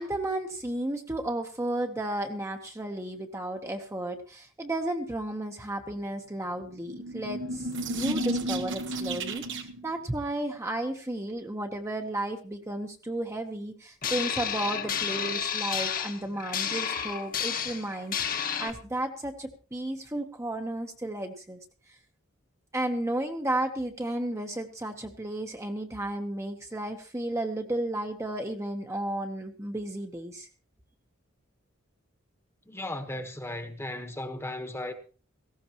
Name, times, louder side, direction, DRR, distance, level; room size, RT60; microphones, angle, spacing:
voice 1, 0.0-21.6 21.9-22.0 22.7-30.5, right 1 dB, 15° right, 1.0 m, -33 dB
sound 1, 6.7-9.9, right 1 dB, 60° right, 1.2 m, -32 dB
sound 2, 14.0-18.7, left 7 dB, 45° left, 1.3 m, -31 dB
voice 2, 32.7-34.9, left 1 dB, 10° left, 1.2 m, -36 dB
18.0 x 15.0 x 3.0 m
head